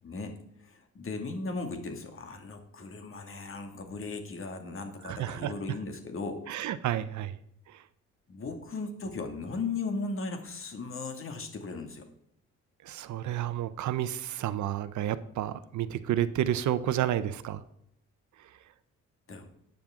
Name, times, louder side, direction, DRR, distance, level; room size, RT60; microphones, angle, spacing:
voice 1, 0.0-6.5 8.3-12.1 19.3-19.5, left 3 dB, 45° left, 5 dB, 2.2 m, -37 dB
voice 2, 5.0-5.5 6.5-7.4 7.7-7.8 12.8-17.6 18.4-18.5, right 11 dB, 70° right, 14 dB, 0.7 m, -31 dB
13.0 x 9.1 x 3.7 m, 0.73 s
cardioid pair, 90°, 30 cm